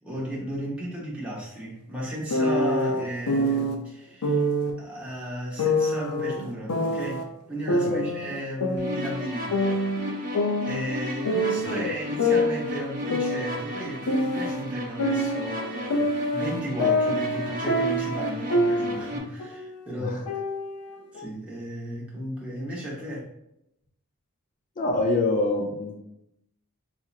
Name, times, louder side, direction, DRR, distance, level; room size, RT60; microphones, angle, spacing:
voice 1, 0.0-4.4 4.8-9.8 10.6-20.2 21.1-23.3, equal, 5° right, -6 dB, 1.0 m, -34 dB
sound 1, 2.3-3.7 4.2-4.7 5.6-7.2 7.7-9.2 9.5-11.8 12.2-14.6 15.0-19.1 19.4-19.8 20.3-21.3, left 1 dB, 90° left, 0.5 m, -26 dB
sound 2, 8.8-19.2, left 1 dB, 35° right, 0.6 m, -34 dB
voice 2, 24.8-26.0, left 2 dB, 35° left, 2 dB, 0.4 m, -25 dB
4.1 x 2.8 x 2.4 m, 0.81 s
head